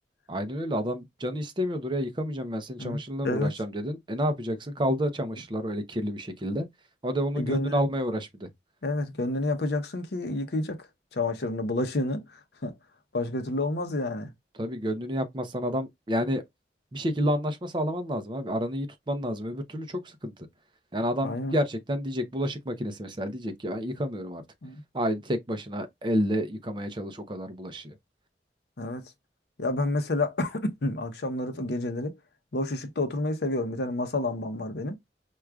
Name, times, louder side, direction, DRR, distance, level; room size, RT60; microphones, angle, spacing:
voice 1, 0.3-6.7 7.0-8.5 14.6-16.4 16.9-20.3 20.9-24.4 24.9-27.9, equal, 25° right, 0.6 m, -30 dB
voice 2, 7.4-7.8 8.8-10.8 11.1-12.7 13.1-14.3 21.2-21.6 24.6-24.8 28.8-29.0 29.6-32.1 32.5-35.0, left 2 dB, 60° left, 0.7 m, -29 dB
4.6 x 2.3 x 2.3 m
head